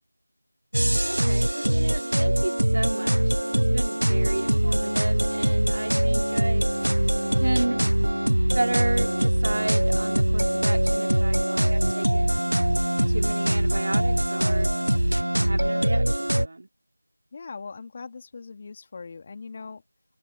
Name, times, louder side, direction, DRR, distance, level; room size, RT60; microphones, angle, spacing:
sound 1, 0.7-16.5, right 1 dB, 65° right, 0.7 m, -23 dB
voice 1, 1.0-6.7 7.3-7.8 8.3-12.6 13.1-14.7 15.3-16.7, right 2 dB, 40° right, 2.8 m, -33 dB
sound 2, 4.0-10.7, equal, 80° left, 8.0 m, -41 dB
voice 2, 17.3-19.8, left 4 dB, 20° left, 2.8 m, -40 dB
open air
figure-of-eight pair, 170°, 0 cm